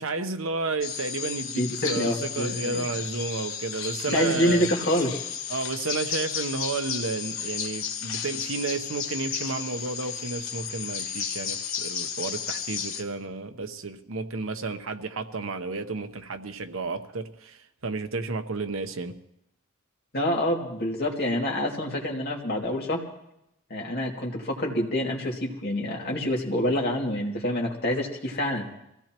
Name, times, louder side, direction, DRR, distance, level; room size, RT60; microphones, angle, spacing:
voice 1, 0.0-4.7 5.5-19.1, right 3 dB, 80° right, 8 dB, 1.0 m, -32 dB
sound 1, 0.8-13.0, left 7 dB, 70° left, 1.2 m, -33 dB
voice 2, 1.6-2.9 4.1-5.2 20.1-23.0 23.7-28.7, left 1 dB, 50° left, -1 dB, 2.4 m, -27 dB
24.5 x 16.5 x 3.0 m, 0.79 s
head